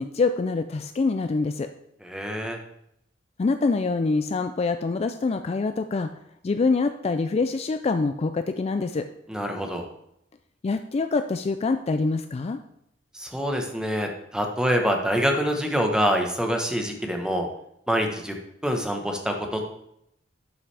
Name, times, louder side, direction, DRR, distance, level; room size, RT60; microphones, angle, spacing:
voice 1, 0.0-1.7 3.4-6.1 6.4-9.1 10.6-12.6, left 3 dB, 35° left, 8 dB, 0.4 m, -25 dB
voice 2, 2.0-2.6 9.3-9.9 13.1-17.5 17.9-18.4 18.6-19.6, equal, 5° right, 3 dB, 1.1 m, -25 dB
11.0 x 6.0 x 3.3 m, 0.78 s
head